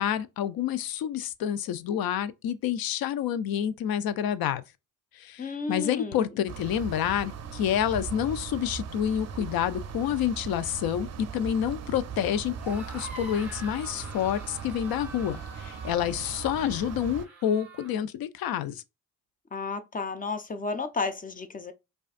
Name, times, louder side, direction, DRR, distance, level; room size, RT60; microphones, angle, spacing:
voice 1, 0.0-4.6 5.2-18.8, left 9 dB, 85° left, 0.5 m, -28 dB
voice 2, 5.4-6.3 19.5-21.7, left 4 dB, 25° left, 0.3 m, -32 dB
sound 1, 6.5-17.3, right 7 dB, 50° right, 0.5 m, -39 dB
sound 2, 12.5-18.0, right 2 dB, 5° right, 1.4 m, -45 dB
5.0 x 2.4 x 2.4 m
wide cardioid pair, 140°, 35 cm